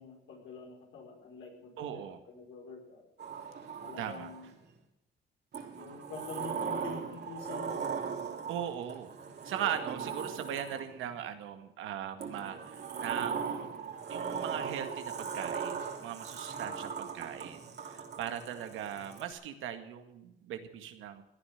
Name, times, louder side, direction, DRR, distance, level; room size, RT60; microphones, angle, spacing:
voice 1, 0.0-3.1 3.8-4.5 5.7-7.9 16.6-16.7, left 4 dB, 80° left, 2 dB, 5.1 m, -46 dB
voice 2, 1.8-2.2 4.0-4.3 8.5-9.1 9.4-13.7 14.1-21.2, right 9 dB, 90° right, 8 dB, 1.9 m, -39 dB
Sliding door, 3.2-4.6 5.5-11.1 12.2-19.3, right 6 dB, 55° right, 3.4 m, -39 dB
17.0 x 10.5 x 6.4 m, 0.89 s
cardioid pair, 90°, 20 cm